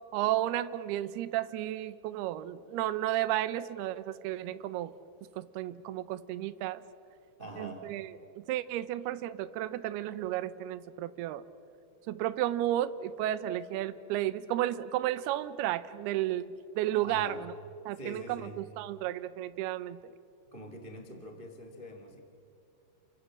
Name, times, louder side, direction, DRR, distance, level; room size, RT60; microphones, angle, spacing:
voice 1, 0.1-4.9 5.4-6.8 7.6-8.1 8.4-11.4 12.1-16.5 16.8-17.5 17.9-20.1, right 13 dB, 75° right, 13 dB, 2.5 m, -33 dB
voice 2, 7.4-7.9 17.0-17.4 17.9-18.6 20.4-22.2, equal, 55° right, 5 dB, 0.5 m, -44 dB
30.0 x 24.5 x 7.6 m, 2.6 s
omnidirectional pair, 5.4 m